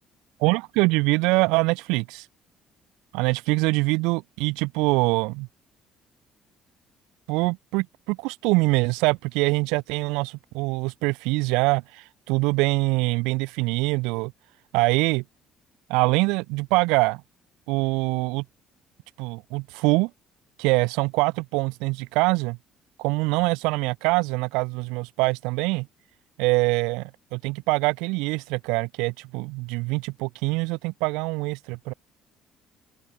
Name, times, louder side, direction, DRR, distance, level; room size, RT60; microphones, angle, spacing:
voice 1, 0.4-2.3 3.1-5.5 7.3-14.3 14.7-15.2 15.9-17.2 17.7-18.4 19.2-20.1 20.6-22.6 23.0-25.9 26.4-31.9, right 26 dB, 80° right, 0.3 m, -24 dB
open air
hypercardioid pair, 60°, 0 cm